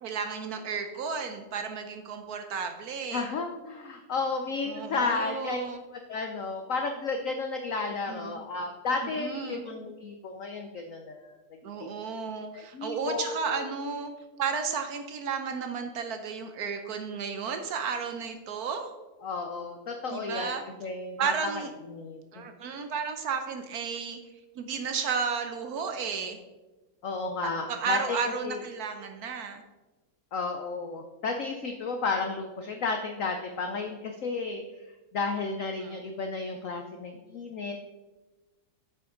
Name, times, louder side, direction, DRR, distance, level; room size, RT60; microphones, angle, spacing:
voice 1, 0.0-3.3 4.7-5.8 8.1-8.4 9.2-9.7 11.6-14.1 14.4-18.9 20.1-20.6 21.2-21.7 22.3-24.2 24.6-26.4 27.4-29.6 35.8-36.0, right 6 dB, 65° right, 7 dB, 0.9 m, -33 dB
voice 2, 3.1-5.6 6.1-11.4 11.8-11.9 12.5-13.7 19.2-20.5 20.8-21.3 21.9-22.4 27.0-28.2 28.4-28.6 30.3-34.6 35.1-37.7, left 4 dB, 80° left, 5 dB, 0.7 m, -32 dB
9.0 x 6.8 x 3.8 m, 1.2 s
omnidirectional pair, 2.2 m